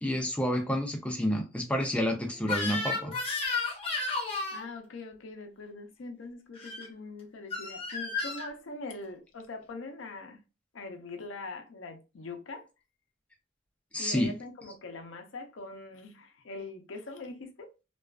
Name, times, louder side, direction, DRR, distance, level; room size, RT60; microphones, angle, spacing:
voice 1, 0.0-3.2 13.9-14.3, equal, 5° left, 0.4 m, -29 dB
Crying sobbing / Screech, 2.4-4.6 6.5-6.9 7.5-8.5, left 3 dB, 30° left, 0.7 m, -32 dB
voice 2, 4.5-10.4 10.7-12.7 14.0-17.7, left 3 dB, 80° left, 0.6 m, -42 dB
2.4 x 2.3 x 2.3 m
head